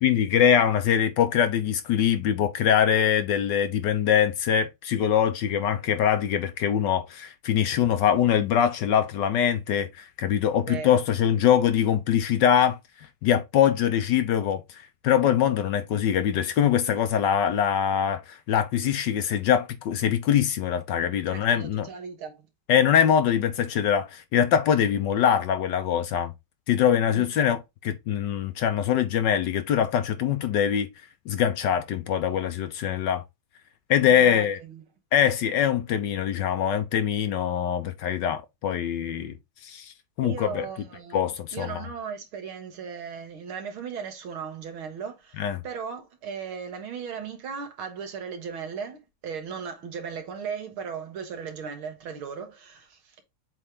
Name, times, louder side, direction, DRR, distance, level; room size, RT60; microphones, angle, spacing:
voice 1, 0.0-12.8 13.2-14.6 15.0-21.9 22.7-26.3 26.7-30.9 31.3-33.2 33.9-34.6 35.1-39.4 39.6-39.9 40.2-40.7 41.1-41.8 45.4-45.6, left 9 dB, 70° left, 1.3 m, -23 dB
voice 2, 10.7-11.0 21.3-22.5 23.1-23.2 27.1-27.3 34.0-34.8 40.2-41.2 41.5-53.2, right 6 dB, 80° right, 2.4 m, -37 dB
7.7 x 3.3 x 3.7 m
omnidirectional pair, 2.3 m